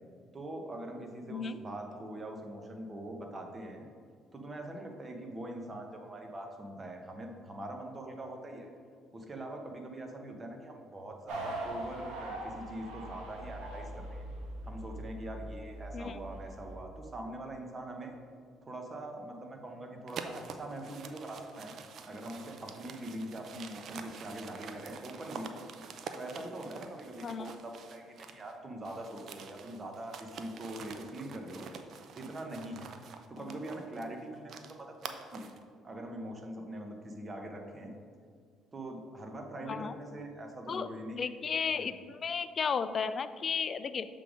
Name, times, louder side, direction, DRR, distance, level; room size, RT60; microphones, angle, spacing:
voice 1, 0.3-3.9 4.3-8.7 9.1-14.2 14.6-18.1 18.6-25.5 26.1-31.7 32.2-32.9 33.3-35.5 35.8-37.9 38.7-41.2 41.7-41.9, right 1 dB, 30° right, 3 dB, 1.0 m, -43 dB
sound 1, 11.3-16.8, right 1 dB, 90° right, 1.1 m, -42 dB
sound 2, 20.1-28.5 28.8-35.6, right 5 dB, 60° right, 0.5 m, -47 dB
voice 2, 39.6-39.9 40.7-40.9 41.2-44.1, left 6 dB, 45° left, 13 dB, 0.3 m, -34 dB
6.7 x 3.8 x 5.0 m, 2.2 s
supercardioid pair, 85°, 0 cm